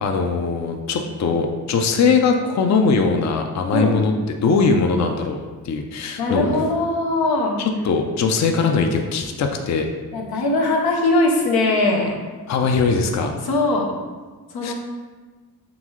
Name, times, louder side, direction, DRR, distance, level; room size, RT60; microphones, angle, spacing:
voice 1, 0.0-6.6 7.6-9.9 12.5-13.3 14.6-14.7, left 4 dB, 50° left, 4 dB, 0.5 m, -20 dB
voice 2, 6.2-7.6 10.1-12.2 13.4-13.9 14.5-14.7, left 2 dB, 90° left, 0 dB, 0.7 m, -20 dB
3.8 x 3.6 x 3.1 m, 1.3 s
cardioid pair, 70°, 37 cm